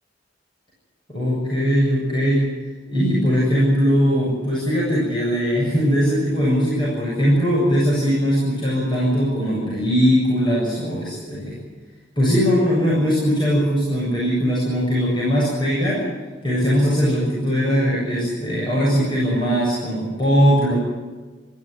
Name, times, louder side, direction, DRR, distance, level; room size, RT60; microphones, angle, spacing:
voice 1, 1.1-2.5 2.9-11.6 12.2-16.1 16.4-20.8, equal, 25° left, -6 dB, 7.5 m, -20 dB
25.0 x 14.5 x 9.7 m, 1.3 s
head